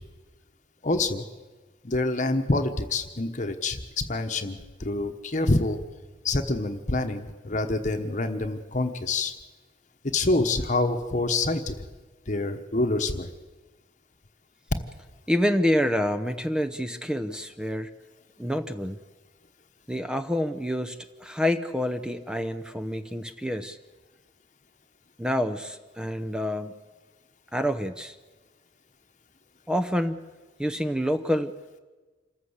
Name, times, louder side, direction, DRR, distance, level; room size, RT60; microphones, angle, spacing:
voice 1, 0.8-1.2 1.8-5.8 6.2-9.3 10.0-11.9 12.3-13.3, left 2 dB, 40° left, 7 dB, 1.1 m, -26 dB
voice 2, 15.3-17.9 18.4-19.0 19.9-23.8 25.2-26.8 27.5-28.2 29.7-30.2 30.6-31.5, equal, 5° right, 8 dB, 0.7 m, -27 dB
27.0 x 14.5 x 8.1 m, 1.3 s
head